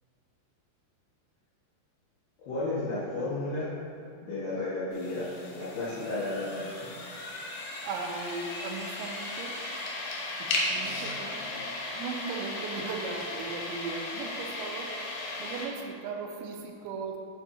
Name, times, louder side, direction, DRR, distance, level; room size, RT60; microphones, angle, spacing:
voice 1, 2.5-3.7 4.2-7.0, left 2 dB, 65° left, -12 dB, 2.9 m, -33 dB
sound 1, 4.9-15.7, left 2 dB, 85° left, 1.8 m, -36 dB
voice 2, 7.8-9.6 10.4-11.4 11.9-14.9 15.4-17.2, right 4 dB, 80° right, 3 dB, 2.8 m, -37 dB
9.0 x 7.6 x 2.7 m, 2.5 s
omnidirectional pair, 5.2 m